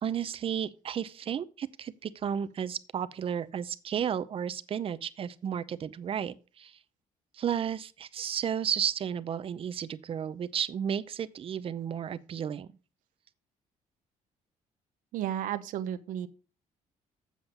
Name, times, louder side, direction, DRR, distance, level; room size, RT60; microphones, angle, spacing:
voice 1, 0.0-6.8 7.3-12.7, right 8 dB, 45° right, 0.6 m, -33 dB
voice 2, 15.1-16.3, right 11 dB, 80° right, 0.9 m, -33 dB
7.6 x 7.3 x 5.2 m
cardioid pair, 120°, 13 cm